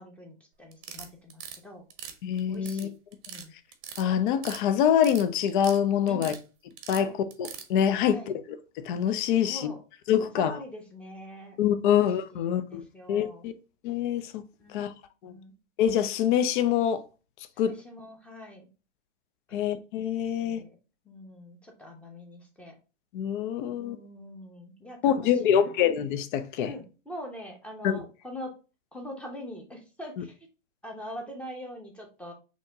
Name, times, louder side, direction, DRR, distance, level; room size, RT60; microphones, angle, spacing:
voice 1, 0.0-1.8 2.5-2.9 3.3-3.5 6.1-6.3 7.0-7.1 8.0-8.3 9.4-9.8 10.2-11.6 12.3-13.5 14.6-14.9 15.2-15.5 17.5-18.7 19.5-19.6 20.4-20.7 21.0-22.7 23.7-25.8 26.5-28.5 28.9-30.4 30.8-32.3, equal, 5° left, 0.8 m, -43 dB
sound 1, 0.7-1.6 1.9-2.8 3.1-3.4 3.7-4.6 4.9-5.8 6.1-6.4 6.8-7.7, right 9 dB, 30° right, 0.8 m, -41 dB
voice 2, 2.2-2.9 4.0-6.4 6.9-7.1 7.4-8.2 8.8-9.7 10.1-10.5 11.6-12.8 13.1-13.5 13.8-14.4 14.7-14.9 15.2-15.3 15.8-17.0 17.6-17.7 19.5-20.6 23.1-24.0 25.0-26.7 27.8-28.0, left 9 dB, 40° left, 0.5 m, -25 dB
4.2 x 3.0 x 3.4 m
hypercardioid pair, 125°, 38 cm